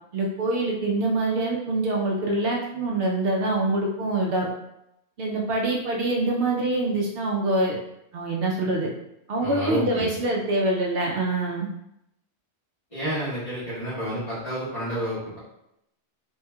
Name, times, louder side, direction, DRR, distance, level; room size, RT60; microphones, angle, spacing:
voice 1, 0.1-4.5 5.2-7.8 8.1-8.9 9.3-11.7, right 2 dB, 70° right, -2 dB, 0.7 m, -25 dB
voice 2, 9.4-10.1 12.9-15.4, equal, 30° left, -11 dB, 1.5 m, -30 dB
3.1 x 2.9 x 2.3 m, 0.82 s
omnidirectional pair, 1.1 m